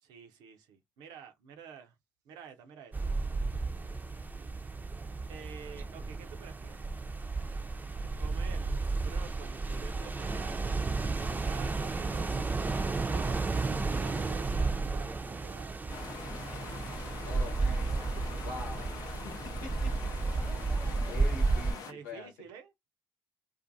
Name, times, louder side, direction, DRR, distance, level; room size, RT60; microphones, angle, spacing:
voice 1, 0.0-1.9 2.2-3.1 5.3-6.8 8.2-10.7 11.2-12.3 13.1-13.4 13.7-15.8 21.7-22.9, right 7 dB, 75° right, 0.6 m, -50 dB
sound 1, 2.9-21.7, right 3 dB, 25° right, 0.5 m, -33 dB
sound 2, 15.9-21.9, left 6 dB, 60° left, 0.5 m, -44 dB
voice 2, 17.2-17.9 18.4-19.3 19.6-19.9 21.0-22.3, left 4 dB, 85° left, 1.0 m, -44 dB
2.5 x 2.5 x 2.5 m
hypercardioid pair, 50°, 7 cm